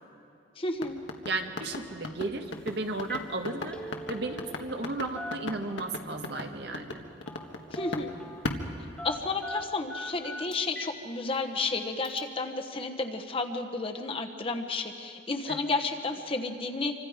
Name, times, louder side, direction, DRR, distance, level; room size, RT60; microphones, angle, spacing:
voice 1, 0.6-1.0 7.7-8.1 9.0-16.9, left 3 dB, 30° left, 4 dB, 1.2 m, -32 dB
sound 1, 0.8-8.1 8.4-9.5, left 2 dB, 75° left, 1.6 m, -36 dB
voice 2, 1.2-7.0 15.5-15.6, right 2 dB, 60° right, 4 dB, 1.6 m, -34 dB
Telephone, 2.5-2.7 3.0-3.3 3.6-4.9 5.2-6.1 7.3-7.5 7.8-8.5 9.0-11.0 11.3-11.4 12.0-12.2, left 1 dB, 5° left, 1.4 m, -41 dB
26.5 x 25.0 x 5.1 m, 2.6 s
head